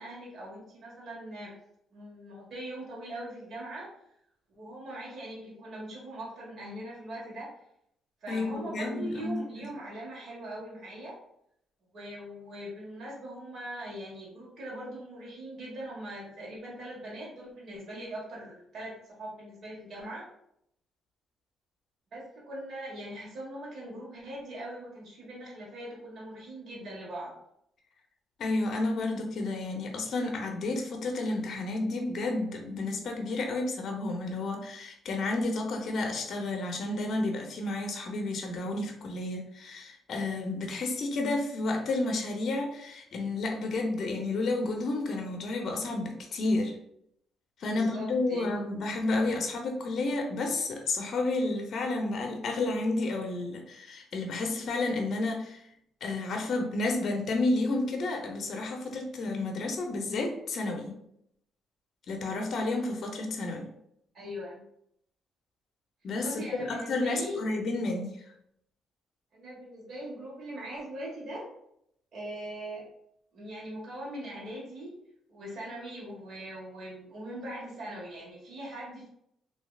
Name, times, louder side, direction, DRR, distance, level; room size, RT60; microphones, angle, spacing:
voice 1, 0.0-1.5 1.9-3.9 4.5-7.5 8.2-11.2 11.9-20.3 22.1-27.4 47.7-48.6 64.1-64.6 66.2-67.4 69.3-71.5 72.1-72.9 73.3-75.0 75.3-79.1, right 1 dB, 55° right, -5 dB, 1.3 m, -41 dB
voice 2, 8.3-9.7 28.4-46.8 47.6-55.6 56.0-61.0 62.1-63.7 66.0-68.2, left 2 dB, 60° left, 2 dB, 0.6 m, -31 dB
3.1 x 2.6 x 2.3 m, 0.73 s
cardioid pair, 90°, 0 cm